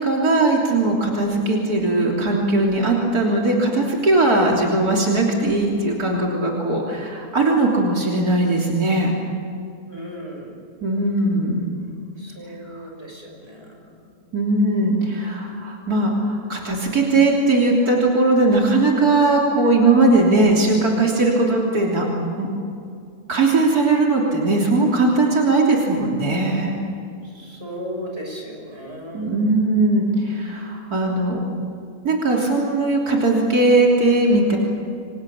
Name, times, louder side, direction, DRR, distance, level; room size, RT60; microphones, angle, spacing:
voice 1, 0.0-9.1 10.8-11.7 12.7-12.8 14.3-22.1 22.4-22.5 23.3-26.7 29.1-31.4 32.0-34.6, right 2 dB, 85° right, -1 dB, 3.8 m, -19 dB
voice 2, 9.9-10.5 12.2-14.1 27.3-29.5, equal, 45° right, 0 dB, 7.1 m, -36 dB
29.5 x 24.5 x 7.3 m, 2.4 s
omnidirectional pair, 1.6 m